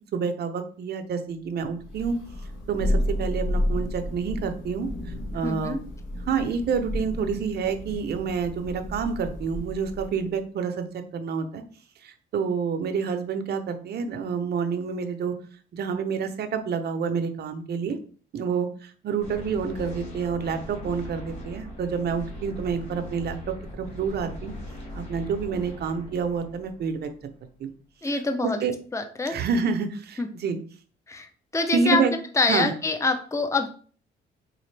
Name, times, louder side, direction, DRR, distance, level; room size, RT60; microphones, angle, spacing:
voice 1, 0.0-2.2 2.7-4.9 5.3-5.8 6.3-11.6 12.0-15.3 15.7-18.0 18.3-24.5 24.9-27.1 27.6-27.7 28.0-28.7 29.3-30.6 31.7-32.1 32.5-32.7, right 5 dB, 55° right, 7 dB, 0.6 m, -28 dB
Thunder, 1.8-10.2, left 1 dB, 75° left, 1.1 m, -31 dB
voice 2, 5.4-5.8 28.0-28.6 28.9-29.4 30.2-30.3 31.1-32.0 32.4-33.7, left 3 dB, 15° left, 7 dB, 0.5 m, -25 dB
sound 1, 19.2-27.4, left 1 dB, 35° left, 1.8 m, -40 dB
4.0 x 2.4 x 3.2 m, 0.43 s
cardioid pair, 90°, 20 cm